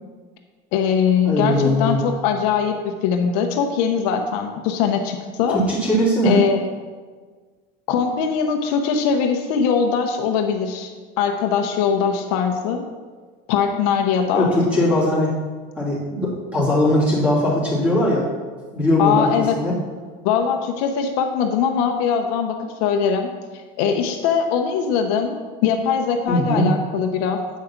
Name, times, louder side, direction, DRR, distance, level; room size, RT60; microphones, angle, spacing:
voice 1, 0.7-5.6 6.2-6.6 7.9-10.9 11.2-12.8 13.5-14.5 19.0-19.6 20.2-23.3 23.8-25.3 25.6-27.4, left 7 dB, 70° left, 4 dB, 0.9 m, -21 dB
voice 2, 1.2-2.0 5.5-6.4 14.3-15.3 15.8-18.3 18.7-19.8 26.3-26.8, left 1 dB, 5° right, -7 dB, 2.8 m, -20 dB
8.5 x 5.1 x 5.9 m, 1.5 s
cardioid pair, 160°, 20 cm